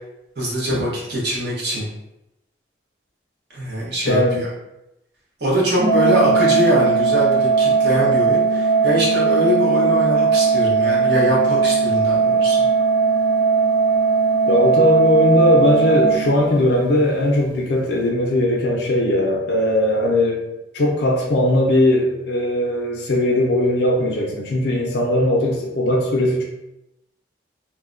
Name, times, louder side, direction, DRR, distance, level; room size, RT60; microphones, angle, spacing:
voice 1, 0.4-1.9 3.5-4.5 5.4-12.7, equal, 60° right, -5 dB, 0.9 m, -22 dB
voice 2, 4.1-4.4 14.5-20.4 20.7-26.4, left 1 dB, 55° left, -1 dB, 0.4 m, -19 dB
Organ, 5.8-16.8, right 5 dB, 40° right, 0.3 m, -18 dB
2.6 x 2.1 x 2.4 m, 0.89 s
head